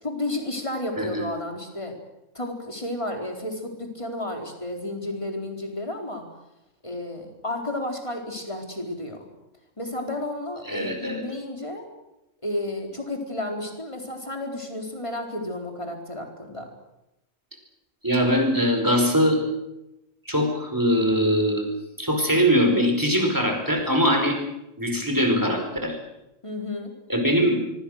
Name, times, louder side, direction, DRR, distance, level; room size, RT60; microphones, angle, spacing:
voice 1, 0.0-1.9 2.3-6.2 6.8-9.3 9.8-11.9 12.4-16.7 26.4-26.9, left 1 dB, 20° left, 2 dB, 4.3 m, -32 dB
voice 2, 10.7-11.2 18.0-19.4 20.3-21.7 22.0-24.4 24.8-26.0 27.1-27.6, equal, 15° right, 3 dB, 5.1 m, -22 dB
25.0 x 24.0 x 6.6 m, 0.92 s
omnidirectional pair, 1.4 m